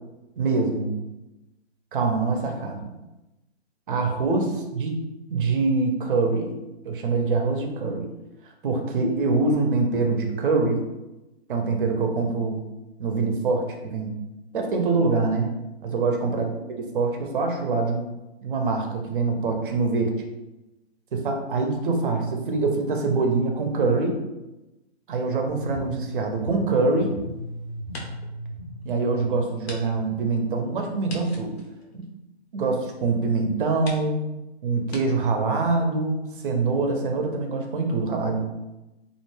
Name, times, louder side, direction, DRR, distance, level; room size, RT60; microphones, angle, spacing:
voice 1, 0.4-0.9 1.9-2.8 3.9-4.9 5.3-6.5 6.8-8.1 8.6-10.9 11.5-12.6 13.0-14.2 14.5-15.5 15.8-16.5 16.9-18.0 18.4-20.1 21.1-24.2 25.1-27.1 28.8-31.6 31.9-32.0 32.5-34.2 34.6-38.4, right 3 dB, 50° right, 3 dB, 0.5 m, -24 dB
sound 1, 25.5-31.5, equal, 25° left, 0.5 m, -38 dB
sound 2, 26.4-27.4 27.8-28.4 28.8-28.9 29.6-29.8 30.1-30.2 31.0-32.6 33.3-33.4 33.8-34.1 34.9-35.0, left 2 dB, 65° left, 0.7 m, -42 dB
2.4 x 2.2 x 3.1 m, 1.0 s
hypercardioid pair, 160°, 34 cm